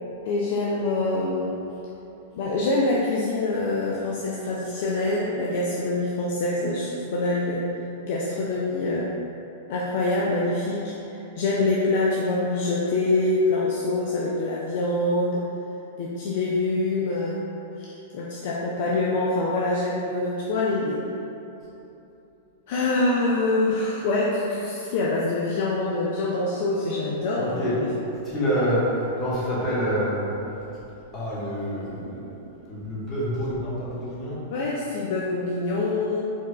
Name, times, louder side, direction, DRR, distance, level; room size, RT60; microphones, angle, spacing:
voice 1, 0.3-1.6 2.4-7.7 8.0-9.1 9.7-15.4 16.0-17.4 17.8-21.0 22.7-27.9 34.5-36.4, left 2 dB, 50° left, -4 dB, 0.4 m, -25 dB
voice 2, 27.4-27.8 28.2-30.2 31.1-34.4, equal, 25° left, -8 dB, 1.1 m, -27 dB
4.2 x 3.2 x 2.3 m, 3.0 s
figure-of-eight pair, 100°, 0 cm